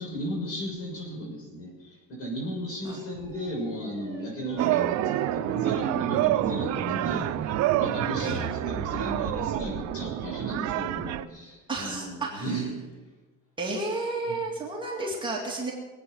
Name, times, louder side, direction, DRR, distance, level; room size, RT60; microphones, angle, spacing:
voice 1, 0.0-12.7 14.3-14.4, equal, 50° left, 0 dB, 6.2 m, -35 dB
sound 1, 3.0-9.9, right 2 dB, 10° left, 6.4 m, -40 dB
sound 2, 4.6-11.2, right 14 dB, 60° right, 0.7 m, -28 dB
voice 2, 11.7-12.5 13.6-15.7, right 2 dB, 15° right, -3 dB, 2.2 m, -32 dB
21.5 x 8.9 x 6.2 m, 1.2 s
cardioid pair, 170°, 31 cm